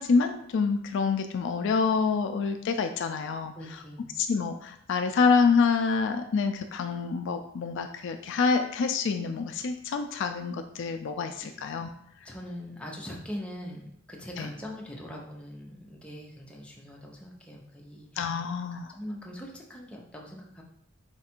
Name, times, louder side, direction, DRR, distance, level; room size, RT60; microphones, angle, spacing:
voice 1, 0.0-3.5 4.2-11.9 14.4-14.5 18.2-18.9, left 5 dB, 60° left, 7 dB, 0.3 m, -27 dB
voice 2, 3.6-4.2 11.4-11.5 12.2-18.4 18.7-20.6, equal, 5° left, -2 dB, 0.7 m, -42 dB
4.3 x 2.4 x 4.3 m, 0.72 s
head